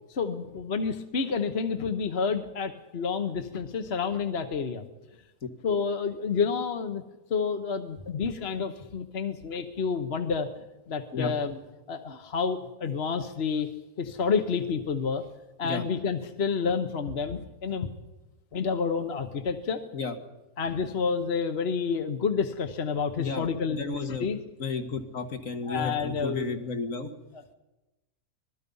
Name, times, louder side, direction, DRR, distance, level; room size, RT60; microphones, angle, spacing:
voice 1, 0.1-4.9 5.6-7.0 7.3-10.5 10.9-11.6 11.9-13.7 14.0-15.3 15.6-17.9 18.5-19.8 20.6-24.4 25.7-26.6 27.3-27.5, left 5 dB, 50° left, 7 dB, 1.3 m, -29 dB
voice 2, 23.2-24.3 24.6-27.1, left 4 dB, 65° left, 5 dB, 2.1 m, -32 dB
25.5 x 20.5 x 5.5 m, 1.1 s
omnidirectional pair, 1.5 m